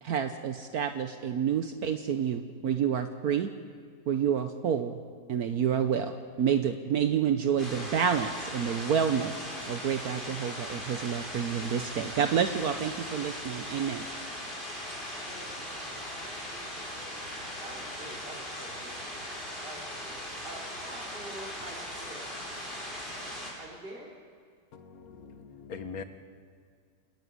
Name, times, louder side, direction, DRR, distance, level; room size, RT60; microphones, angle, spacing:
voice 1, 0.0-3.5 4.1-5.0 5.3-9.3 9.7-14.1, right 8 dB, 65° right, 7 dB, 1.3 m, -29 dB
sound 1, 7.6-23.5, left 1 dB, 35° left, 7.8 m, -39 dB
voice 2, 15.3-22.5 23.6-24.1, right 1 dB, 35° right, -5 dB, 3.9 m, -48 dB
voice 3, 24.7-26.0, left 5 dB, 60° left, 9 dB, 1.7 m, -42 dB
27.0 x 11.5 x 9.8 m, 2.1 s
omnidirectional pair, 1.8 m